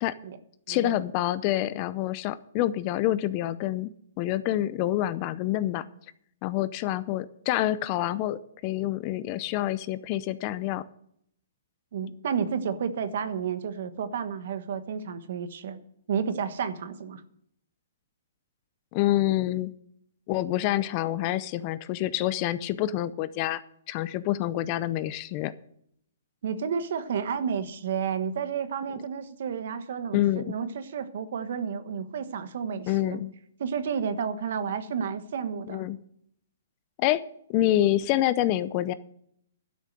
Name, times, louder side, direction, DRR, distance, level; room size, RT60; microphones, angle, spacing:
voice 1, 0.7-3.9 4.2-5.9 6.4-10.8 18.9-19.7 20.3-23.6 23.9-25.5 30.1-30.5 32.9-33.3 35.7-36.0 37.0-37.2 37.5-38.9, left 14 dB, 30° left, 16 dB, 0.6 m, -27 dB
voice 2, 11.9-15.8 16.1-17.2 26.4-33.2 33.6-35.9, right 7 dB, 60° right, 11 dB, 1.2 m, -31 dB
12.0 x 6.6 x 7.6 m, 0.69 s
hypercardioid pair, 155°, 0 cm